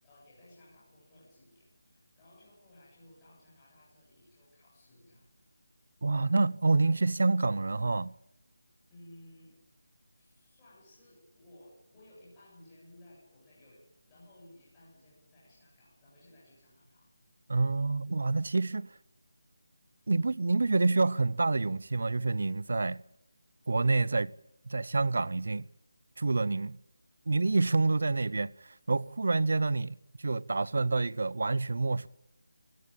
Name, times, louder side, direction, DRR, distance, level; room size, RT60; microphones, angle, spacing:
voice 1, 0.0-5.3 8.9-9.6 10.2-17.1, left 1 dB, 10° left, 8.0 m, -58 dB
voice 2, 6.0-8.1 17.5-18.9 20.1-23.0 23.7-24.3 24.7-25.7 26.2-26.8 27.3-32.1, right 3 dB, 55° right, 0.8 m, -28 dB
25.0 x 17.5 x 8.7 m
figure-of-eight pair, 175°, 0 cm